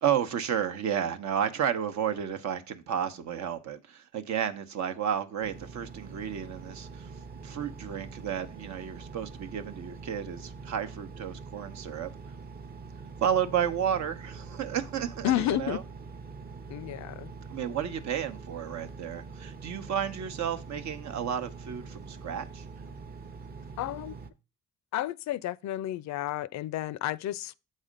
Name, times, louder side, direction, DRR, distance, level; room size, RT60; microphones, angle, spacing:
voice 1, 0.0-7.1 7.4-12.1 13.2-15.8 17.5-22.6, right 9 dB, 65° right, 0.9 m, -32 dB
Engine, 5.4-24.3, right 4 dB, 30° right, 0.7 m, -44 dB
voice 2, 15.2-15.8 16.7-17.3 23.8-24.2 24.9-27.5, left 13 dB, 65° left, 0.4 m, -31 dB
7.5 x 4.1 x 5.1 m
cardioid pair, 90°, 30 cm